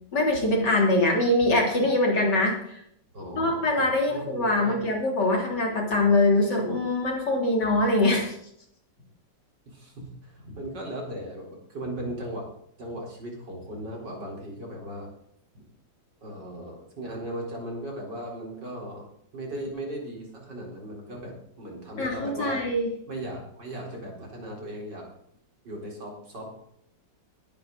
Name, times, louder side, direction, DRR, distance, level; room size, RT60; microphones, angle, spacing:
voice 1, 0.1-2.8 3.4-8.4 22.0-22.9, left 2 dB, 60° left, 0 dB, 3.7 m, -23 dB
voice 2, 3.1-3.7 4.1-4.8 9.7-12.5 12.8-15.1 16.2-22.6 23.1-25.1 25.6-26.5, right 1 dB, 60° right, -1 dB, 4.7 m, -37 dB
20.5 x 10.5 x 4.0 m, 0.69 s
omnidirectional pair, 2.1 m